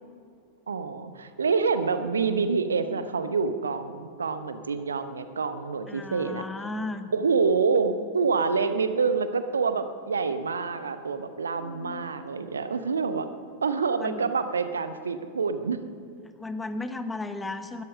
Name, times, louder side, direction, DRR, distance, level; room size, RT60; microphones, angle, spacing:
voice 1, 0.7-6.4 7.1-13.3 13.6-15.8, right 5 dB, 70° right, 11 dB, 0.9 m, -27 dB
voice 2, 5.9-7.1 11.5-12.2 14.0-14.2 16.2-17.8, left 2 dB, 10° left, 10 dB, 1.1 m, -35 dB
20.0 x 13.5 x 5.4 m, 2.4 s
figure-of-eight pair, 90°, 0 cm